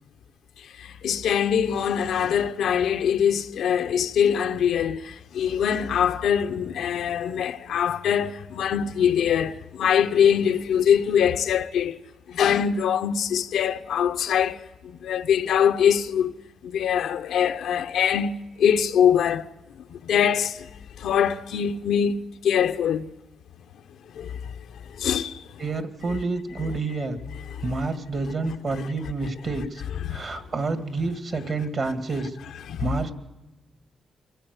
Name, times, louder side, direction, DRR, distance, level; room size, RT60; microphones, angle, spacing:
voice 1, 0.6-12.0 12.3-16.3 16.6-19.5 19.9-20.7 21.0-22.2 22.4-23.1 24.1-24.6 24.9-25.4 27.5-27.9 28.7-28.9 30.0-30.4 32.7-32.9, left 8 dB, 85° left, 0.8 m, -23 dB
voice 2, 25.6-27.2 27.6-29.8 30.1-32.4 32.8-33.1, right 3 dB, 50° right, 2.2 m, -28 dB
24.0 x 16.0 x 8.1 m
cardioid pair, 85°, 0 cm